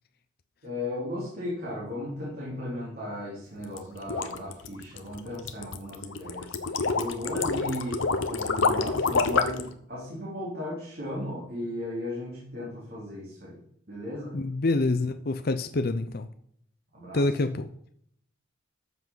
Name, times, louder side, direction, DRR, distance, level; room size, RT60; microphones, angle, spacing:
voice 1, 0.6-6.5 6.9-8.0 8.3-13.6 13.9-14.4 16.9-17.2, left 1 dB, 50° right, -7 dB, 3.8 m, -36 dB
sound 1, 3.6-9.7, left 4 dB, 75° left, 1.0 m, -27 dB
voice 2, 14.3-16.3 17.1-17.7, left 2 dB, 50° left, 9 dB, 0.6 m, -26 dB
13.5 x 7.3 x 4.0 m, 0.67 s
head